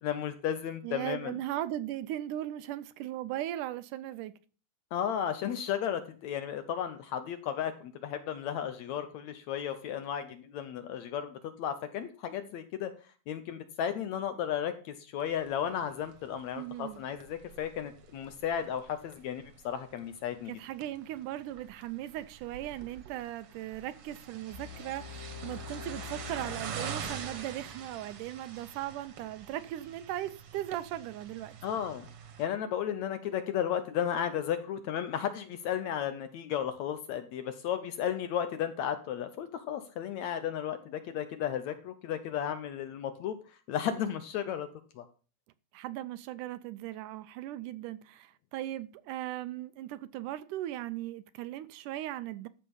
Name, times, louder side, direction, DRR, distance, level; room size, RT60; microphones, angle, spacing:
voice 1, 0.0-1.3 4.9-12.9 13.3-20.5 31.6-32.1 32.4-43.4 43.7-44.7 45.0-45.1, left 9 dB, 70° left, 1.9 m, -34 dB
voice 2, 0.8-4.3 16.5-17.0 20.5-31.6 45.7-52.5, right 13 dB, 80° right, 2.0 m, -38 dB
sound 1, 15.2-32.5, right 6 dB, 55° right, 1.9 m, -46 dB
sound 2, 24.5-27.5, left 6 dB, 85° left, 4.0 m, -45 dB
13.0 x 6.6 x 5.5 m
omnidirectional pair, 3.9 m